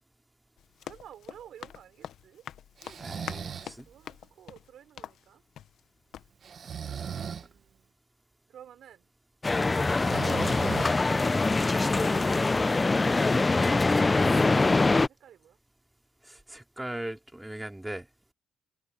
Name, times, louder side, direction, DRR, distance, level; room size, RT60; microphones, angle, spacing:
Run, 0.6-5.9 6.1-6.3, left 10 dB, 75° left, 0.8 m, -45 dB
voice 1, 0.8-2.5 3.8-5.4 7.3-8.0 8.5-9.1 11.6-15.6, right 10 dB, 70° right, 5.1 m, -52 dB
Breathing, 2.8-3.7 6.4-7.5 9.8-11.2, right 7 dB, 55° right, 1.3 m, -37 dB
voice 2, 3.0-3.9 6.9-7.3 16.2-18.1, right 1 dB, 10° right, 2.5 m, -39 dB
sound 1, 9.4-15.1, left 3 dB, 20° left, 0.6 m, -24 dB
cardioid pair, 90°, 0 cm